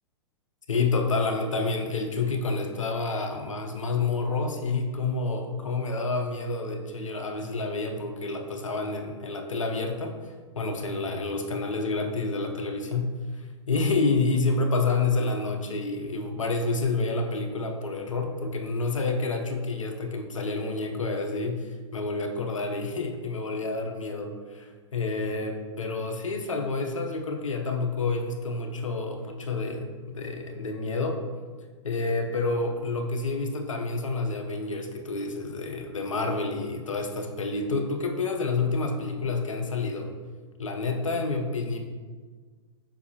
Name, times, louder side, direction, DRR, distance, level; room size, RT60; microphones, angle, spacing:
voice 1, 0.7-10.2 10.6-13.1 13.7-31.2 31.8-40.1 40.6-41.8, left 3 dB, 85° left, 4 dB, 0.8 m, -29 dB
6.9 x 5.3 x 2.8 m, 1.5 s
hypercardioid pair, 110°, 16 cm